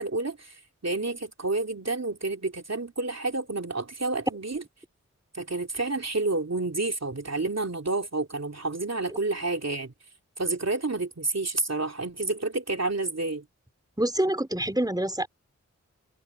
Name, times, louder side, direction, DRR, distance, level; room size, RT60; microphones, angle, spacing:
voice 1, 0.0-4.6 5.3-9.9 10.4-13.4, right 3 dB, 60° right, 3.1 m, -29 dB
voice 2, 14.0-15.3, right 1 dB, 15° right, 3.9 m, -26 dB
wide cardioid pair, 45°, 30 cm